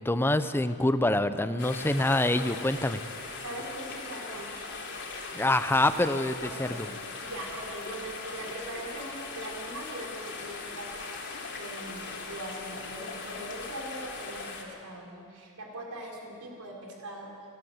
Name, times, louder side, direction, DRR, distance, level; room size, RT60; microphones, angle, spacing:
voice 1, 0.0-3.0 5.3-6.9, left 1 dB, 10° left, 11 dB, 0.6 m, -26 dB
sound 1, 1.6-14.6, left 4 dB, 55° left, 3.1 m, -40 dB
voice 2, 3.4-4.5 6.4-6.8 7.2-17.3, right 1 dB, 80° right, -1 dB, 4.5 m, -41 dB
28.5 x 12.0 x 7.9 m, 2.3 s
head